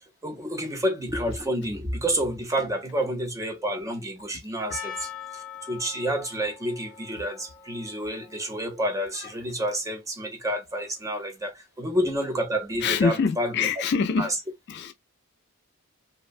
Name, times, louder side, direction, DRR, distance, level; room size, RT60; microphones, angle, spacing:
voice 1, 0.2-13.5 14.2-14.3, right 1 dB, 15° right, 0.5 m, -29 dB
Percussion, 4.7-9.9, left 8 dB, 35° left, 0.7 m, -43 dB
voice 2, 12.8-14.3 14.7-14.9, left 5 dB, 50° left, 0.3 m, -25 dB
2.5 x 2.1 x 2.4 m
head